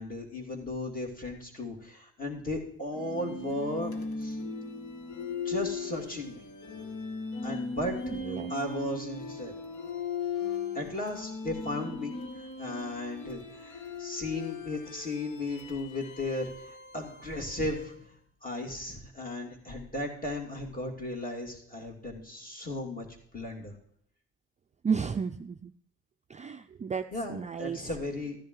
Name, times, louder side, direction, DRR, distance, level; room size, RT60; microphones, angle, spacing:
voice 1, 0.0-4.4 5.4-6.4 7.4-8.0 8.5-9.5 10.7-12.2 12.6-17.9 18.4-23.1 23.3-23.7 27.1-28.4, left 1 dB, 30° left, 0 dB, 2.6 m, -35 dB
sound 1, 2.9-18.0, left 4 dB, 75° left, 1.3 m, -38 dB
voice 2, 24.8-25.7 26.3-27.0 27.3-27.8, right 6 dB, 25° right, 7 dB, 0.4 m, -32 dB
14.0 x 10.5 x 3.1 m, 0.71 s
cardioid pair, 90°, 30 cm